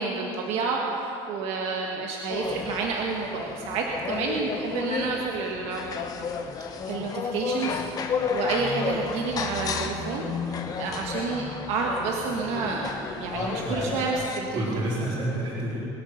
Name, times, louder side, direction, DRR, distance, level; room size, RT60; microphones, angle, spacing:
voice 1, 0.0-5.9 6.9-14.8, right 4 dB, 65° right, 0 dB, 1.5 m, -30 dB
sound 1, 2.3-14.4, left 5 dB, 35° left, 1.1 m, -32 dB
voice 2, 13.3-13.9 14.5-15.8, right 1 dB, 45° right, -7 dB, 4.3 m, -29 dB
22.0 x 8.3 x 6.6 m, 2.8 s
cardioid pair, 140°, 12 cm